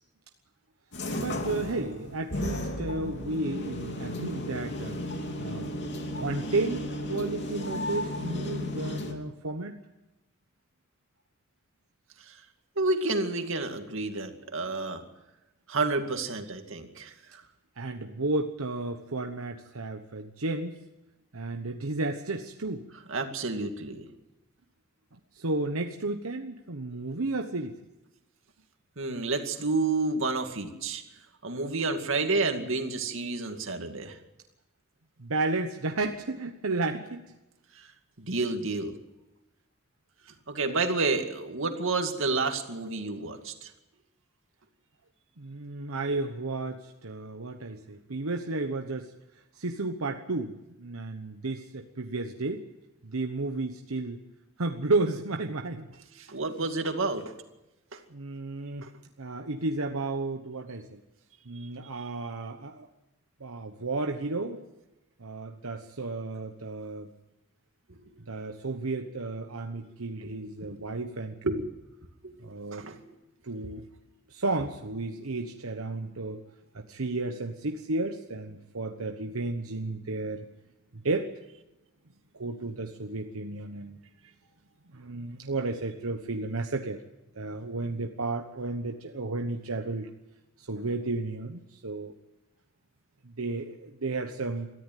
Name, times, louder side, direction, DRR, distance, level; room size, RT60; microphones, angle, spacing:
sound 1, 0.9-9.1, left 1 dB, 55° left, 2.6 m, -34 dB
voice 1, 1.1-5.0 5.4-5.7 6.1-9.8 17.8-20.8 21.3-22.8 25.3-27.7 35.2-37.2 45.4-49.1 49.6-52.6 53.0-54.2 54.6-55.9 58.1-58.8 59.2-61.0 61.5-62.9 63.4-64.6 65.2-67.1 68.3-71.6 72.4-72.9 73.4-73.8 74.3-76.4 76.7-80.4 81.0-81.3 82.3-84.0 84.9-87.0 87.4-90.1 90.6-92.1 93.2-94.7, right 2 dB, 85° right, 4 dB, 1.2 m, -32 dB
voice 2, 12.8-15.0 15.7-17.4 23.1-24.0 29.0-31.0 31.4-34.2 37.8-37.9 38.2-38.9 40.5-43.7 56.2-57.3 57.9-58.0 58.8-58.9 70.4-70.9 72.2-72.3 72.7-73.0, right 3 dB, 65° right, 5 dB, 2.3 m, -30 dB
22.5 x 14.0 x 9.3 m, 0.98 s
head